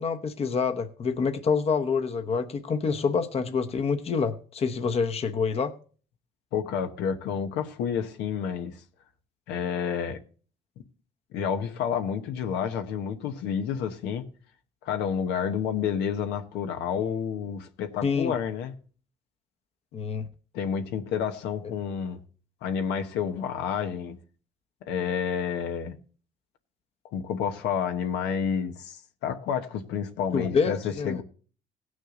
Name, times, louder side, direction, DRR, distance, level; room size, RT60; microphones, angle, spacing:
voice 1, 0.0-5.7 18.0-18.3 19.9-20.3 30.3-31.2, left 5 dB, 35° left, 1.0 m, -27 dB
voice 2, 6.5-8.8 9.5-10.2 11.3-14.3 14.8-18.7 20.5-22.2 22.6-24.2 24.9-26.0 27.1-31.2, left 7 dB, 85° left, 1.2 m, -29 dB
17.0 x 6.4 x 3.8 m
cardioid pair, 110°, 17 cm